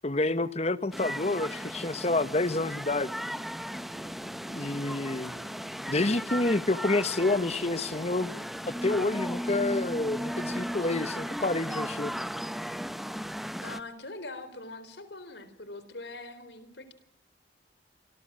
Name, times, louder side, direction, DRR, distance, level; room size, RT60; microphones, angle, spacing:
voice 1, 0.0-3.1 4.5-5.3 5.9-8.3 8.7-12.1, left 2 dB, 35° left, 1.1 m, -28 dB
sound 1, 0.9-13.8, equal, ahead, 1.0 m, -36 dB
sound 2, 1.5-13.9, right 1 dB, 20° right, 4.9 m, -54 dB
voice 2, 13.6-16.9, left 2 dB, 65° left, 4.0 m, -42 dB
28.0 x 25.5 x 7.6 m
head